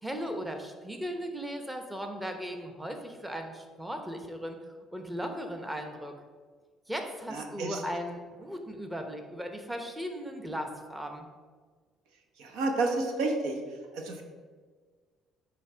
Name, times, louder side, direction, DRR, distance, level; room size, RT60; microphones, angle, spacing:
voice 1, 0.0-4.6 4.9-6.1 6.9-11.3, equal, 10° right, 4 dB, 0.9 m, -37 dB
voice 2, 7.3-7.8 12.4-13.6 13.9-14.2, right 3 dB, 80° right, 4 dB, 1.0 m, -30 dB
8.7 x 3.4 x 4.9 m, 1.5 s
supercardioid pair, 85°, 0 cm